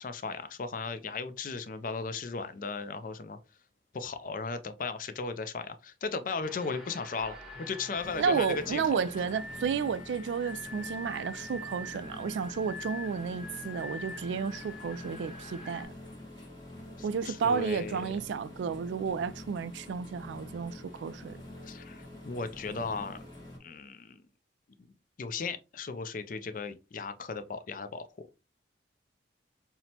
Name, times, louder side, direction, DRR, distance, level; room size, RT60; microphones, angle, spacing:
voice 1, 0.0-3.4 3.9-9.0 17.0-18.1 21.6-23.2 23.6-24.2 24.8-24.9 25.2-28.4, left 4 dB, 45° left, 0.4 m, -36 dB
sound 1, 6.4-15.8, left 2 dB, ahead, 1.0 m, -45 dB
sound 2, 8.0-23.6, left 1 dB, 25° left, 1.2 m, -46 dB
voice 2, 8.2-15.9 17.0-21.4, right 6 dB, 75° right, 0.3 m, -32 dB
5.8 x 2.1 x 2.7 m
head